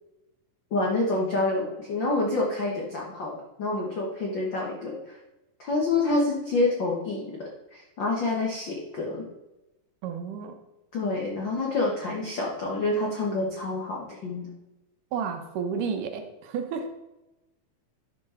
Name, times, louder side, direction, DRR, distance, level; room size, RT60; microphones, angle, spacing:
voice 1, 0.7-5.2 5.6-9.3 10.9-14.5, left 2 dB, 65° left, -2 dB, 1.1 m, -28 dB
voice 2, 10.0-10.6 15.1-16.9, right 6 dB, 75° right, 6 dB, 2.5 m, -31 dB
12.0 x 5.3 x 4.2 m, 0.99 s
omnidirectional pair, 4.0 m